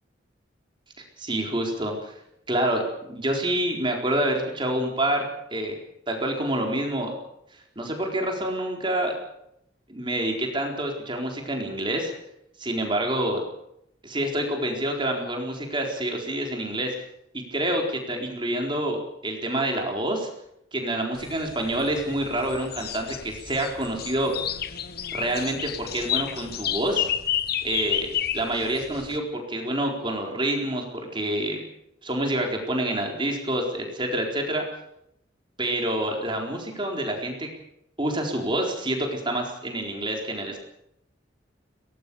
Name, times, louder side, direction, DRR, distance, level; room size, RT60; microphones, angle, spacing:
voice 1, 1.2-2.2 2.5-5.7 6.1-7.1 7.8-9.2 9.9-12.1 12.6-13.4 14.0-16.9 17.3-20.3 20.7-24.3 25.1-27.1 27.6-31.6 32.0-34.6 35.6-37.5 38.0-40.6, right 1 dB, 25° right, 2 dB, 4.2 m, -27 dB
sound 1, 21.2-29.2, left 10 dB, 55° left, 1.1 m, -31 dB
22.5 x 18.5 x 7.0 m, 0.80 s
head